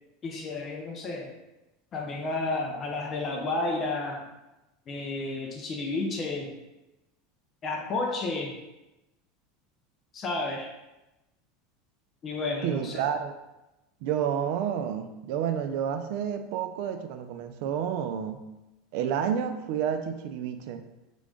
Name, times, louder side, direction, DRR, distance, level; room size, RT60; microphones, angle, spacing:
voice 1, 0.2-1.3 1.9-4.2 4.9-6.5 7.6-8.5 10.1-10.7 12.2-13.0, left 2 dB, 30° left, 1 dB, 0.6 m, -31 dB
voice 2, 12.6-13.4 14.0-18.4 18.9-20.8, right 8 dB, 65° right, 8 dB, 0.4 m, -30 dB
3.7 x 3.6 x 3.7 m, 1.0 s
supercardioid pair, 140°, 0 cm